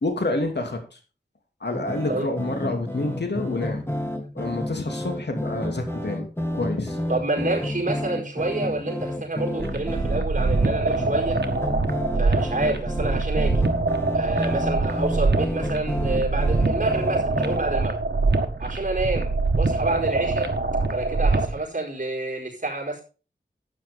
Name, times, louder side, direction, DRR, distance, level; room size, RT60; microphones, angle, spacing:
voice 1, 0.0-1.0 1.6-3.8 4.3-6.3 6.5-7.0, left 2 dB, 70° left, 4 dB, 2.7 m, -28 dB
sound 1, 1.7-17.6, left 1 dB, 15° left, 2.9 m, -30 dB
voice 2, 7.1-11.4 12.1-13.6 14.1-18.0 18.6-20.5 20.9-23.0, right 2 dB, 45° right, 1 dB, 4.9 m, -28 dB
sound 2, 9.6-21.6, right 3 dB, 70° right, 1.5 m, -24 dB
12.0 x 9.5 x 3.6 m, 0.34 s
wide cardioid pair, 60°, 18 cm